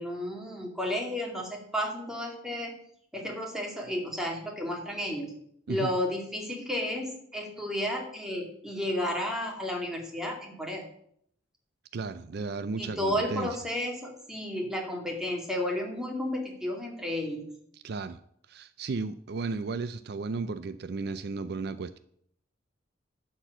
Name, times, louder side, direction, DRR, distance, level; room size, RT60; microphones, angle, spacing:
voice 1, 0.0-2.7 3.1-5.3 5.7-10.8 12.8-17.5, left 1 dB, 5° right, 0 dB, 2.2 m, -32 dB
voice 2, 11.9-13.6 17.7-18.2 18.5-22.0, right 4 dB, 55° right, 12 dB, 0.4 m, -34 dB
11.5 x 4.5 x 7.9 m, 0.68 s
head